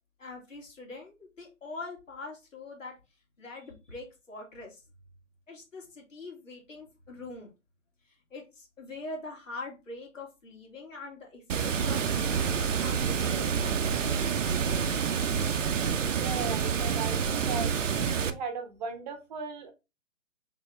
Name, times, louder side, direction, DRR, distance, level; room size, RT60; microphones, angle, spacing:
voice 1, 0.2-2.9 3.4-4.8 5.5-7.5 8.0-14.7, left 3 dB, 65° left, 0 dB, 2.2 m, -43 dB
Water, 11.5-18.3, right 6 dB, 65° right, 0.7 m, -28 dB
voice 2, 16.1-17.7 18.2-19.7, right 4 dB, 30° right, 7 dB, 1.0 m, -37 dB
4.0 x 3.6 x 3.4 m, 0.27 s
figure-of-eight pair, 130°, 41 cm